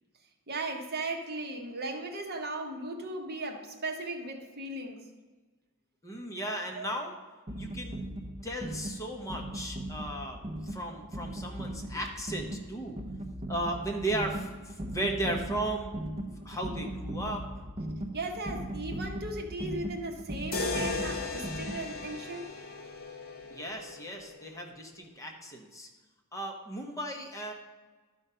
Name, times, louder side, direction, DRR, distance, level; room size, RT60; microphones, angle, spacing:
voice 1, 0.5-5.1 6.7-6.9 18.1-22.5, right 2 dB, 45° right, 3 dB, 1.1 m, -37 dB
voice 2, 6.0-7.2 7.6-8.0 8.4-13.0 13.5-15.9 16.2-17.7 21.3-21.5 23.4-25.9 26.3-27.5, right 1 dB, 15° left, 2 dB, 0.9 m, -36 dB
sound 1, 7.5-22.1, right 1 dB, 30° right, 0.6 m, -39 dB
sound 2, 20.5-24.6, left 4 dB, 45° left, 1.2 m, -37 dB
12.0 x 4.9 x 5.6 m, 1.3 s
head